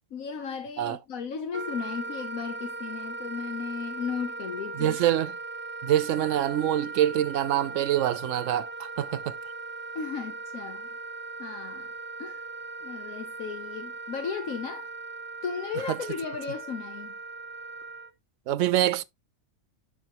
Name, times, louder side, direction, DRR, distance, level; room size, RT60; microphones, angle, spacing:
voice 1, 0.1-5.0 9.9-10.9 11.4-11.9 12.2-12.5 12.8-14.9 15.4-17.1, left 6 dB, 85° left, 1.4 m, -35 dB
Wind instrument woodwind instrument, 1.5-18.1, right 3 dB, 15° right, 0.4 m, -39 dB
voice 2, 4.8-5.3 5.8-9.4 15.9-16.0 18.5-19.0, right 12 dB, 70° right, 0.9 m, -25 dB
12.0 x 4.2 x 2.9 m
omnidirectional pair, 1.4 m